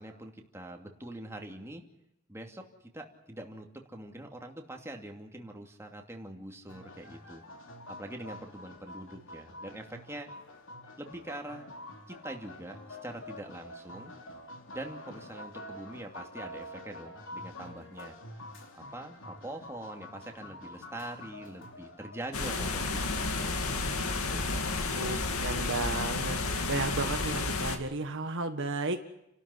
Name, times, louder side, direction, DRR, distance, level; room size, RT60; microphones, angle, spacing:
voice 1, 0.0-1.8 2.3-2.7 2.9-7.4 7.9-10.3 11.0-11.7 12.1-14.1 14.7-18.1 18.8-24.0 24.3-24.8, right 1 dB, 15° right, 2 dB, 2.7 m, -44 dB
sound 1, 6.7-23.0, left 1 dB, 65° left, 3.4 m, -47 dB
sound 2, 22.3-27.8, left 3 dB, 90° left, 2.4 m, -31 dB
voice 2, 25.4-26.3 26.7-29.0, right 3 dB, 60° right, 6 dB, 1.7 m, -33 dB
30.0 x 13.0 x 9.9 m, 0.84 s
head